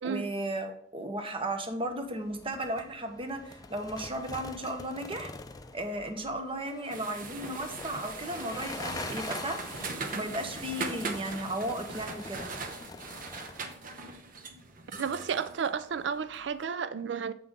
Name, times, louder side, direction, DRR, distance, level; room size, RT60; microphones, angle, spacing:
voice 1, 0.0-5.3 5.7-9.6 10.1-12.5, right 1 dB, 30° right, 0.9 m, -35 dB
sound 1, 1.7-13.7, left 3 dB, 20° left, 0.5 m, -44 dB
sound 2, 6.9-16.4, right 4 dB, 50° right, 0.8 m, -40 dB
voice 2, 15.0-17.3, right 6 dB, 70° right, 0.4 m, -32 dB
7.6 x 5.8 x 3.6 m
head